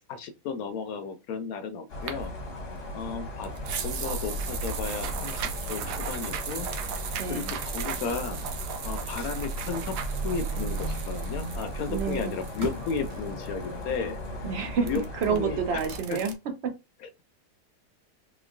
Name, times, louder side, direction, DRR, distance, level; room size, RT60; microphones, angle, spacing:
voice 1, 0.1-2.3 2.9-3.5 3.8-6.7 7.3-8.4 8.8-10.0 10.2-14.2 14.8-15.0 15.3-15.8 16.1-16.2 17.0-17.1, left 5 dB, 70° left, 0.9 m, -34 dB
sound 1, 1.9-16.0, left 1 dB, 45° left, 1.0 m, -37 dB
sound 2, 2.1-16.3, right 5 dB, 80° right, 1.2 m, -36 dB
sound 3, 5.1-6.6 7.5-9.4 10.0-11.6 12.3-13.1, right 3 dB, 40° right, 1.3 m, -47 dB
voice 2, 7.2-7.5 11.9-12.4 14.4-16.7, right 6 dB, 60° right, 0.7 m, -29 dB
3.6 x 3.0 x 2.5 m
omnidirectional pair, 1.8 m